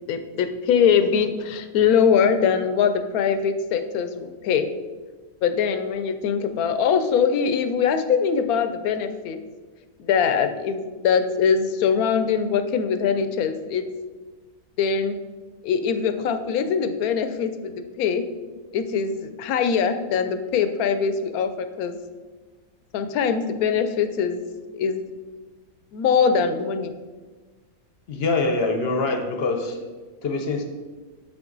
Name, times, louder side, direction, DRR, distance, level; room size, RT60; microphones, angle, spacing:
voice 1, 0.1-4.7 5.4-9.4 10.0-13.9 14.8-15.2 15.6-18.2 18.7-22.0 22.9-24.4 24.7-25.0 25.9-26.9, left 6 dB, 80° left, 9 dB, 1.1 m, -22 dB
voice 2, 28.1-29.8 30.2-30.6, left 3 dB, 50° left, 4 dB, 0.9 m, -24 dB
6.4 x 6.0 x 3.9 m, 1.3 s
omnidirectional pair, 1.5 m